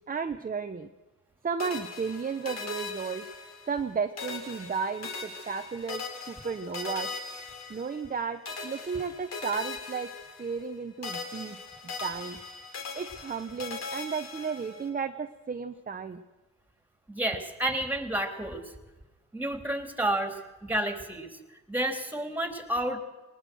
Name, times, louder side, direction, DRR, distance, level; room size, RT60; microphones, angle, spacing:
voice 1, 0.1-0.9 1.4-3.2 3.7-7.1 7.7-10.1 10.4-11.6 12.0-12.4 12.9-16.2, right 5 dB, 30° right, 7 dB, 1.0 m, -33 dB
sound 1, 1.6-3.9 4.2-8.2 8.5-10.8 11.0-14.9, left 4 dB, 60° left, 4.1 m, -40 dB
voice 2, 17.1-18.6 19.3-23.0, right 1 dB, 5° right, 5 dB, 3.6 m, -31 dB
21.0 x 19.5 x 6.4 m, 1.2 s
cardioid pair, 90°, 30 cm